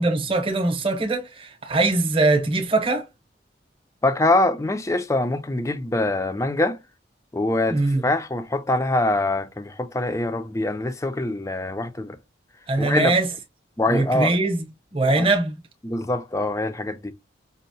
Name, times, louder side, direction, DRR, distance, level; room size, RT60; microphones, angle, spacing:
voice 1, 0.0-3.1 7.7-8.1 12.7-13.3 13.9-14.6 14.9-15.6, right 2 dB, 30° right, 0.8 m, -22 dB
voice 2, 4.0-6.8 7.3-12.2 12.8-13.1 13.8-14.3 15.2-15.3 15.8-17.1, left 2 dB, 15° left, 0.4 m, -24 dB
5.3 x 2.0 x 2.6 m
head